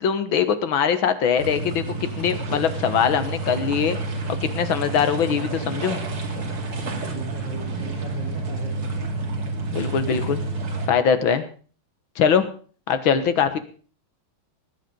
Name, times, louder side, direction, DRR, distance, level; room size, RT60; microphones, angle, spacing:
voice 1, 0.0-1.8 2.2-4.0 4.3-6.0 9.7-10.4 10.9-11.4 12.2-12.5 12.9-13.6, left 7 dB, 70° left, 11 dB, 2.0 m, -22 dB
sound 1, 1.4-10.9, right 3 dB, 85° right, 3.3 m, -29 dB
voice 2, 5.2-5.6 7.1-9.1, right 4 dB, 60° right, -3 dB, 4.0 m, -37 dB
19.5 x 8.6 x 5.3 m, 0.42 s
omnidirectional pair, 2.3 m